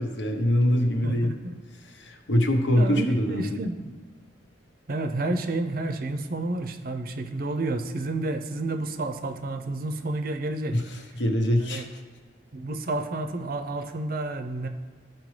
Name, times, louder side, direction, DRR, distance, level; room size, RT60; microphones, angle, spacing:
voice 1, 0.0-1.3 1.9-3.6 10.7-11.9, equal, 75° left, 4 dB, 0.9 m, -24 dB
voice 2, 1.0-1.5 2.7-4.0 4.9-10.8 11.7-11.9 12.5-14.7, right 2 dB, 50° right, 8 dB, 0.5 m, -30 dB
13.0 x 4.5 x 3.2 m, 1.5 s
head